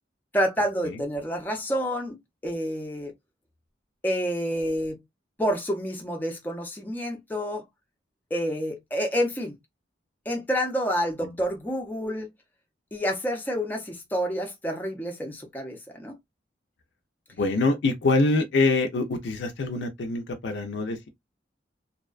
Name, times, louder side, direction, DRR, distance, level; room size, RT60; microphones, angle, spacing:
voice 1, 0.3-2.2 2.4-3.1 4.0-5.0 5.4-7.6 8.3-9.6 10.3-12.3 12.9-16.2, equal, 10° left, 0.5 m, -28 dB
voice 2, 17.4-21.1, left 3 dB, 70° left, 0.4 m, -25 dB
2.6 x 2.1 x 2.3 m
head